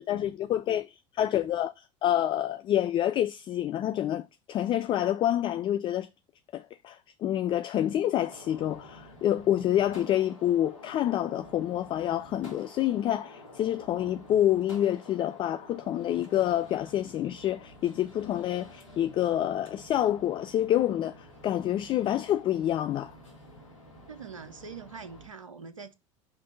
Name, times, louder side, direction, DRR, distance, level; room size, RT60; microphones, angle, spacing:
voice 1, 0.0-1.7 2.0-4.2 4.5-6.1 6.5-23.2, left 12 dB, 30° left, 0.4 m, -27 dB
Gunshot gunfire, 8.2-25.3, left 1 dB, 80° left, 1.8 m, -50 dB
voice 2, 24.1-25.9, right 5 dB, 85° right, 0.5 m, -43 dB
5.8 x 3.2 x 5.4 m
figure-of-eight pair, 70°, 16 cm